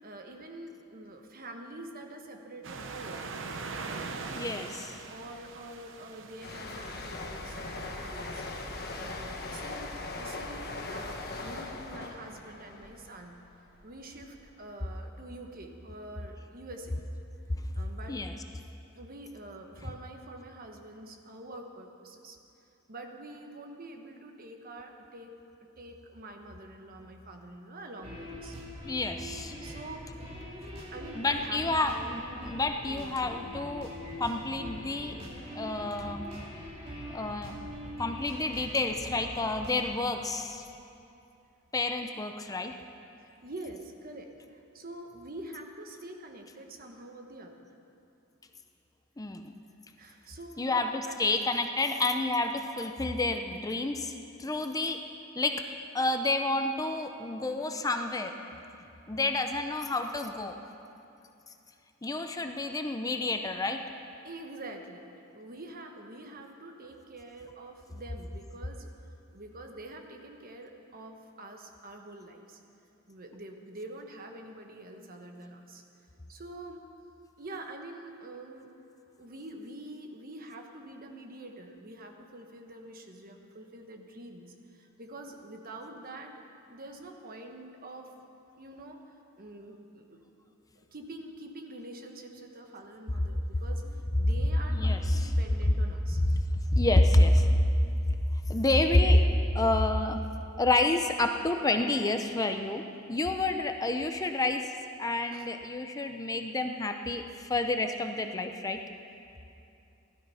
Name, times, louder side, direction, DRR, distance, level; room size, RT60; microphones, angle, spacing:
voice 1, 0.0-3.3 3.8-4.1 5.0-8.4 9.0-13.4 13.8-17.0 17.7-18.2 19.0-22.4 22.9-25.3 25.6-28.6 29.6-30.3 30.7-31.6 43.4-47.7 50.0-51.2 64.2-65.1 65.3-68.9 69.3-72.6 73.1-75.8 76.3-76.8 77.4-78.7 79.2-86.3 86.7-88.1 88.6-90.2 90.7-96.2 98.3-98.4 105.3-105.5, right 2 dB, 45° right, 4 dB, 1.2 m, -46 dB
sound 1, 2.6-9.1, right 4 dB, 70° right, 0.9 m, -42 dB
voice 2, 4.3-5.0 18.1-18.3 28.8-29.5 31.1-33.9 34.2-35.2 35.6-36.3 37.1-37.5 38.0-40.7 41.7-42.7 49.2-49.5 50.6-55.0 55.4-55.6 55.9-58.3 58.7-58.8 59.1-60.6 62.0-63.8 94.7-95.3 96.3-96.4 96.7-97.6 98.5-99.2 99.5-100.2 100.6-102.8 103.1-104.6 105.0-108.8, left 2 dB, 20° left, 6 dB, 0.5 m, -28 dB
sound 2, 6.4-13.9 14.2-14.5, left 2 dB, 50° left, 1.2 m, -40 dB
sound 3, 28.0-39.9, equal, 30° right, 2.5 m, -42 dB
16.0 x 12.0 x 5.6 m, 2.7 s
head